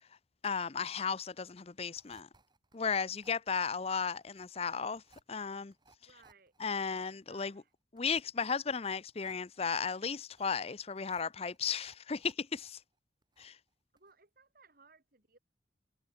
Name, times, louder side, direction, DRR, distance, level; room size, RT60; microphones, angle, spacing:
voice 1, 0.4-2.3 2.7-5.0 5.3-5.7 6.6-7.5 7.9-12.8 13.4-13.6, left 6 dB, 35° left, 0.6 m, -35 dB
sound 1, 2.0-12.7 13.0-13.7 14.0-14.1, right 3 dB, 25° right, 3.4 m, -65 dB
voice 2, 6.1-6.5 7.3-7.7 13.9-15.4, right 4 dB, 50° right, 3.0 m, -62 dB
head